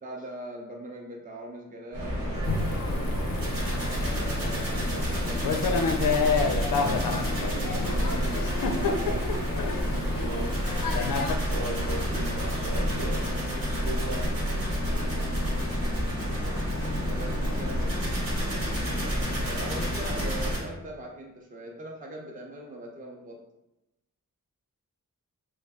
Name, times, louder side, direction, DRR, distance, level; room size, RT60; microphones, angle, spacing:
voice 1, 0.0-2.3 3.9-6.7 7.4-8.4 8.8-9.2 16.9-18.1 19.5-23.4, right 1 dB, 25° right, 0 dB, 0.5 m, -41 dB
sound 1, 1.9-20.6, equal, 85° right, 1.3 m, -29 dB
Thunder / Rain, 2.4-11.3, left 4 dB, 80° left, 0.5 m, -30 dB
voice 2, 10.1-10.7 11.5-13.3 13.6-14.3, right 3 dB, 70° right, -2 dB, 0.9 m, -37 dB
3.1 x 2.3 x 3.5 m, 0.93 s
wide cardioid pair, 80°, 33 cm